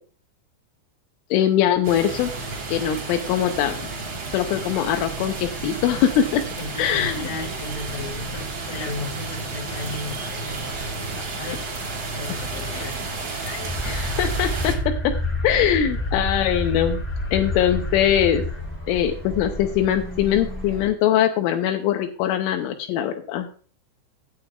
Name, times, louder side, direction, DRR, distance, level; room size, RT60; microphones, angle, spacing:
voice 1, 1.3-2.3 2.7-3.8 4.3-6.4 6.8-7.3 12.5-12.9 13.8-15.1 15.4-17.0 17.3-18.4 18.9-23.5, left 10 dB, 80° left, 5 dB, 3.2 m, -22 dB
sound 1, 1.8-14.8, right 3 dB, 35° right, 2.1 m, -32 dB
voice 2, 6.6-13.0 13.4-13.8, left 3 dB, 50° left, 3 dB, 3.4 m, -35 dB
sound 2, 13.7-20.9, left 1 dB, 20° left, 0.8 m, -29 dB
16.5 x 8.2 x 2.3 m, 0.42 s
omnidirectional pair, 5.6 m